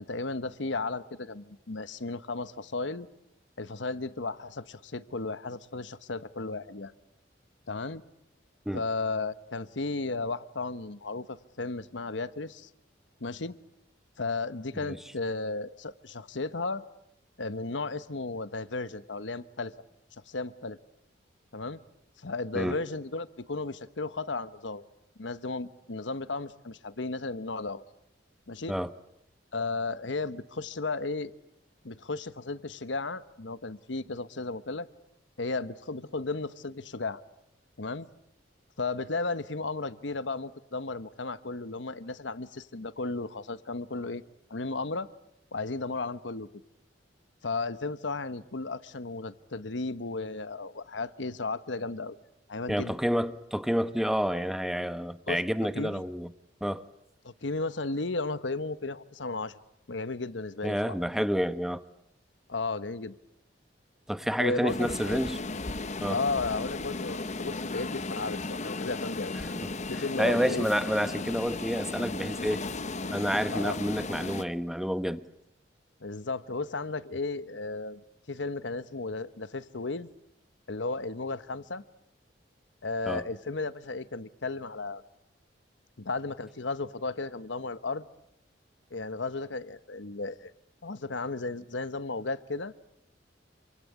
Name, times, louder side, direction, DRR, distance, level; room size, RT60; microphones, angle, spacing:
voice 1, 0.0-3.1 3.6-6.9 7.7-8.0 8.7-12.7 13.2-13.5 14.2-16.8 17.4-19.7 20.3-20.8 21.5-21.8 22.2-24.8 25.2-27.8 28.5-28.7 29.5-31.3 31.8-34.9 35.4-37.2 37.8-38.1 38.8-44.2 44.5-45.1 45.5-46.5 47.4-52.2 52.5-52.9 55.3-55.4 55.7-56.0 57.2-59.6 59.9-60.9 62.5-63.2 64.4-65.2 66.1-69.3 69.9-70.7 73.5-73.8 76.0-78.0 78.3-80.1 80.7-81.8 82.8-85.0 86.0-88.1 88.9-90.5 90.8-92.7, left 3 dB, 80° left, 14 dB, 1.2 m, -34 dB
voice 2, 52.7-56.3 56.6-56.8 60.6-61.8 64.1-65.4 66.0-66.2 69.6-69.7 70.2-72.6 73.1-75.2 83.1-83.2, equal, ahead, 12 dB, 1.0 m, -29 dB
sound 1, 64.7-74.4, left 3 dB, 40° left, 1.0 m, -35 dB
28.0 x 25.0 x 8.6 m, 0.80 s
head